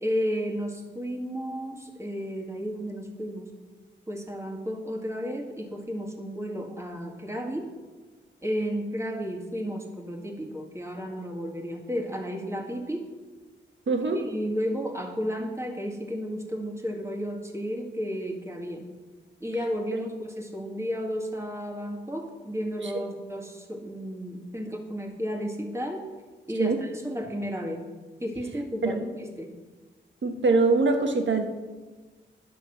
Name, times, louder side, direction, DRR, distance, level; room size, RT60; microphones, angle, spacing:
voice 1, 0.0-3.5 4.1-7.7 8.4-13.0 14.2-18.9 19.4-26.0 26.5-27.9 28.2-29.5, equal, 15° right, 2 dB, 2.0 m, -33 dB
voice 2, 13.9-14.3 22.8-22.9 26.6-26.8 28.8-28.9 30.2-31.5, right 3 dB, 70° right, 4 dB, 1.4 m, -23 dB
11.0 x 6.3 x 5.9 m, 1.3 s
cardioid pair, 55°, 20 cm